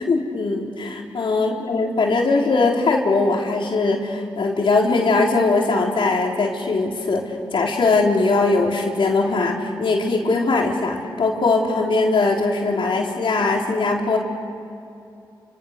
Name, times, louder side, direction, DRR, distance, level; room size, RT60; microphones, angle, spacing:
voice 1, 0.1-7.2 7.5-14.2, left 3 dB, 70° left, 0 dB, 3.8 m, -20 dB
30.0 x 26.0 x 6.7 m, 2.6 s
supercardioid pair, 40°, 9 cm